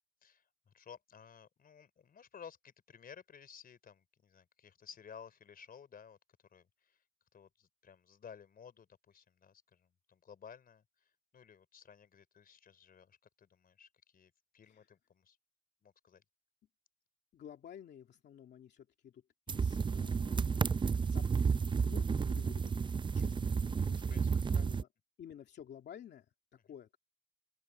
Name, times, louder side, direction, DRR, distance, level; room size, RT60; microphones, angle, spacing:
voice 1, 0.2-6.2 6.5-7.0 7.3-15.4 15.8-16.2 23.9-24.7 26.7-26.8, left 7 dB, 60° left, 4.0 m, -56 dB
voice 2, 17.3-19.2 19.5-20.8 21.1-22.8 23.1-24.9 25.2-26.2 26.7-27.0, left 9 dB, 80° left, 2.6 m, -53 dB
sound 1, 19.5-24.8, right 5 dB, 30° right, 0.5 m, -32 dB
open air
cardioid pair, 110°, 17 cm